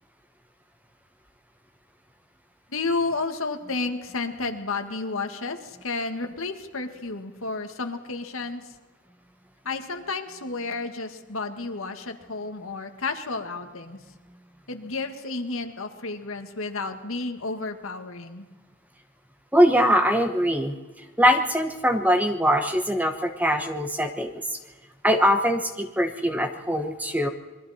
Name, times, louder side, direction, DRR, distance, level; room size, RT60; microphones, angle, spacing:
voice 1, 2.7-8.7 9.6-14.0 14.7-18.5, left 3 dB, 70° left, 6 dB, 1.8 m, -31 dB
voice 2, 19.5-20.7 21.2-24.4 25.0-27.3, equal, 5° right, 7 dB, 1.0 m, -22 dB
27.0 x 22.0 x 4.3 m, 1.3 s
head